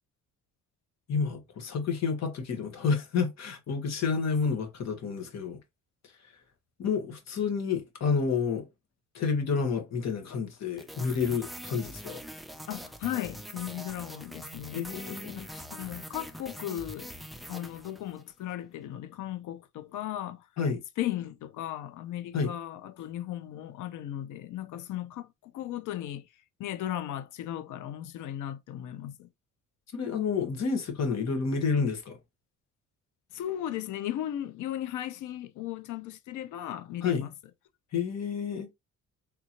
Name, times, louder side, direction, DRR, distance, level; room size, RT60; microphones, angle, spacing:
voice 1, 1.1-5.6 6.8-8.7 9.1-12.2 14.7-15.4 20.6-20.8 22.3-22.5 29.9-32.2 37.0-37.2 37.9-38.7, left 5 dB, 60° left, 1.3 m, -29 dB
sound 1, 10.8-18.3, equal, ahead, 0.4 m, -43 dB
voice 2, 12.7-14.8 15.3-17.1 17.5-20.5 21.0-26.2 26.6-29.3 33.3-37.3, left 12 dB, 80° left, 0.6 m, -36 dB
3.6 x 2.9 x 2.9 m
cardioid pair, 90°, 30 cm